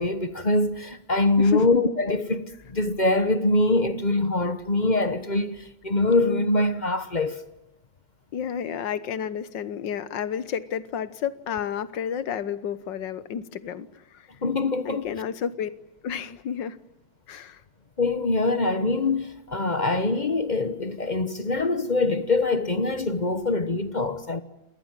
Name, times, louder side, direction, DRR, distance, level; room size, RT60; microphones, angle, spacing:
voice 1, 0.0-7.4 14.4-15.1 18.0-24.4, left 2 dB, 30° left, 0.8 m, -24 dB
voice 2, 8.3-14.3 14.8-15.7 16.0-16.8 17.3-17.6, left 8 dB, 65° left, 1.7 m, -31 dB
27.5 x 19.0 x 9.0 m
omnidirectional pair, 2.3 m